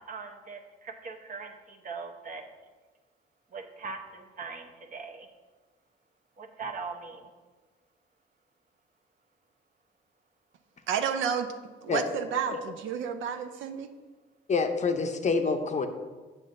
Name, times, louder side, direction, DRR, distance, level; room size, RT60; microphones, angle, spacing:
voice 1, 0.1-2.4 3.5-5.3 6.4-7.3, right 4 dB, 40° right, 5 dB, 0.8 m, -40 dB
voice 2, 10.9-11.5 11.8-13.9, right 7 dB, 75° right, 8 dB, 0.5 m, -30 dB
voice 3, 14.5-15.9, left 4 dB, 35° left, 6 dB, 0.6 m, -27 dB
7.5 x 6.4 x 2.6 m, 1.3 s
cardioid pair, 90°, 20 cm